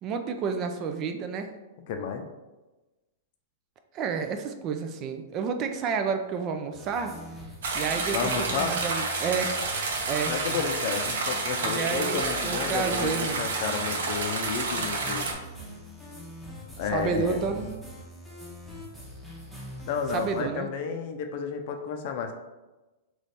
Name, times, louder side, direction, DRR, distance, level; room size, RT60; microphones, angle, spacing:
voice 1, 0.0-1.5 3.9-7.2 7.7-9.6 10.1-10.3 11.7-13.5 16.9-17.7 20.1-20.7, right 6 dB, 30° right, 6 dB, 0.3 m, -30 dB
voice 2, 1.9-2.2 8.1-8.8 10.3-15.3 16.8-17.5 19.9-22.3, left 6 dB, 45° left, 5 dB, 0.5 m, -31 dB
sound 1, 6.7-20.4, equal, 5° left, 0.8 m, -43 dB
sound 2, 7.6-15.3, right 3 dB, 80° right, 0.9 m, -30 dB
3.3 x 3.1 x 4.1 m, 1.1 s
supercardioid pair, 155°, 0 cm